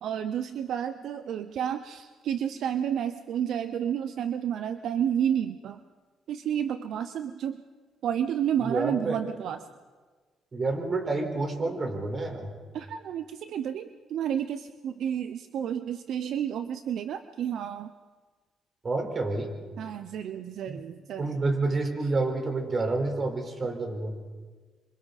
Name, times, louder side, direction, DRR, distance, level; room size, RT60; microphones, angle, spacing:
voice 1, 0.0-5.8 6.3-7.6 8.0-9.6 12.7-17.9 19.8-21.2, right 9 dB, 75° right, 10 dB, 0.7 m, -31 dB
voice 2, 8.6-9.2 10.5-12.5 18.8-19.5 20.7-20.8 21.2-24.2, right 3 dB, 40° right, 3 dB, 4.5 m, -29 dB
27.0 x 25.0 x 4.2 m, 1.4 s
cardioid pair, 90°, 0 cm